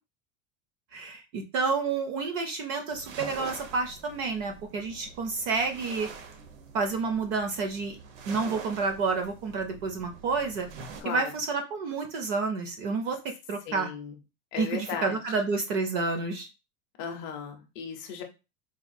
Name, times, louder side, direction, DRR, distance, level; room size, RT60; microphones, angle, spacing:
voice 1, 0.9-6.1 6.7-8.0 8.3-10.7 11.0-13.2 13.5-13.9 14.6-16.5, right 4 dB, 40° right, 5 dB, 0.4 m, -29 dB
sound 1, 2.9-11.0, right 5 dB, 75° right, 0.8 m, -45 dB
voice 2, 11.0-11.3 13.7-14.2 14.5-15.2 17.0-18.2, left 7 dB, 30° left, 3 dB, 0.5 m, -36 dB
4.1 x 2.2 x 2.5 m, 0.28 s
supercardioid pair, 170°, 41 cm